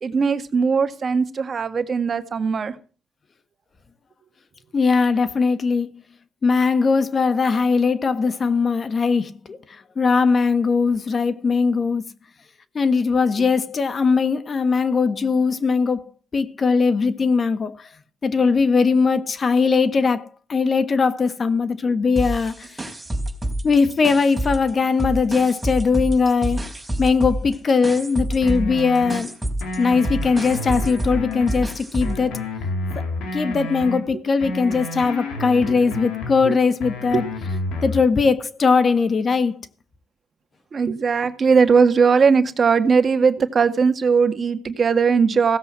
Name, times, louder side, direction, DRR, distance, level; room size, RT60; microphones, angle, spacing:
voice 1, 0.0-2.8 34.1-34.2 35.7-35.9 36.5-36.6 37.1-37.6 40.7-45.6, right 5 dB, 45° right, 1.9 m, -19 dB
voice 2, 4.7-5.9 6.4-12.1 12.7-16.0 16.3-17.9 18.2-22.7 23.6-26.6 27.0-29.3 29.8-32.4 32.9-33.0 33.3-37.2 37.8-39.6, left 4 dB, 40° left, 1.4 m, -20 dB
sound 1, 22.2-24.7 25.0-32.2, right 1 dB, 10° right, 4.1 m, -28 dB
sound 2, 28.4-29.2 29.6-31.6 32.0-34.0 34.4-36.4 36.8-38.0, left 2 dB, 85° left, 4.9 m, -30 dB
16.5 x 7.8 x 7.5 m
cardioid pair, 90°, 0 cm